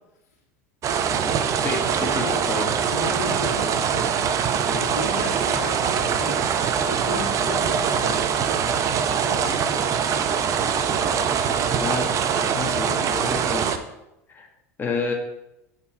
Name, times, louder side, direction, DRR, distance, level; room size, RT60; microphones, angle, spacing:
sound 1, 0.8-13.8, right 7 dB, 40° right, 0.7 m, -23 dB
voice 1, 1.6-2.7 11.5-12.1 12.5-13.8 14.3-14.5 14.8-15.1, left 4 dB, 25° left, 0 dB, 1.6 m, -30 dB
voice 2, 2.9-4.3 4.6-6.4 6.7-9.0 9.3-9.9, left 3 dB, 85° left, -4 dB, 2.3 m, -35 dB
8.4 x 4.5 x 4.4 m, 0.87 s
hypercardioid pair, 85°, 8 cm